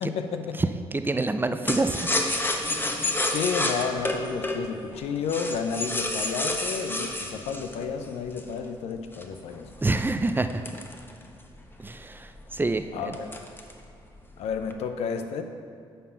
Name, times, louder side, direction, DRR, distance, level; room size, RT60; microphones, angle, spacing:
voice 1, 0.0-0.6 3.2-9.7 12.9-13.5 14.4-15.4, left 6 dB, 80° left, 7 dB, 0.6 m, -31 dB
voice 2, 0.6-2.2 9.8-10.6 11.8-13.1, right 2 dB, 20° right, 9 dB, 0.5 m, -27 dB
sound 1, 1.7-8.6 9.1-11.6 12.0-12.1 12.4-12.7 13.1-13.8 14.2-14.7, left 2 dB, 20° left, 1.0 m, -29 dB
9.1 x 4.4 x 5.6 m, 2.4 s
supercardioid pair, 60°, 11 cm